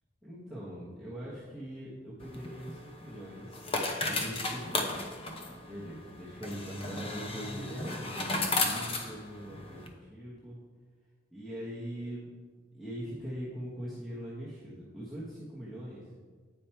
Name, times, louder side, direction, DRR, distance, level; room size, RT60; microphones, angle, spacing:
voice 1, 0.2-3.8 4.0-4.9 5.6-10.6 11.3-12.3 12.7-16.1, equal, ahead, -8 dB, 1.2 m, -42 dB
sound 1, 2.2-9.9, left 2 dB, 30° left, 0.8 m, -35 dB
8.9 x 5.2 x 4.4 m, 1.5 s
head